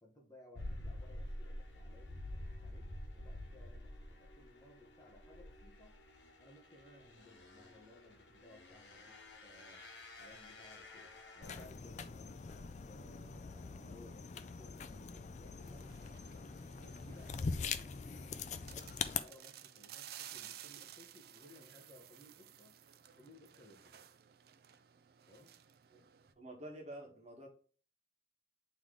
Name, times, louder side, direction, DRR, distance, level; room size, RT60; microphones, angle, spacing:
voice 1, 0.0-6.0 6.4-9.9 10.1-18.3 18.7-22.8 23.2-24.0 25.3-25.6, left 1 dB, 20° left, 0 dB, 1.1 m, -61 dB
sound 1, 0.5-11.7, left 1 dB, 75° left, 1.1 m, -49 dB
sound 2, 11.4-19.2, left 5 dB, 40° left, 0.4 m, -43 dB
sound 3, 15.6-26.3, right 11 dB, 55° right, 0.4 m, -55 dB
voice 2, 26.4-27.5, right 1 dB, 35° right, 0 dB, 1.5 m, -49 dB
8.1 x 3.3 x 3.7 m, 0.41 s
head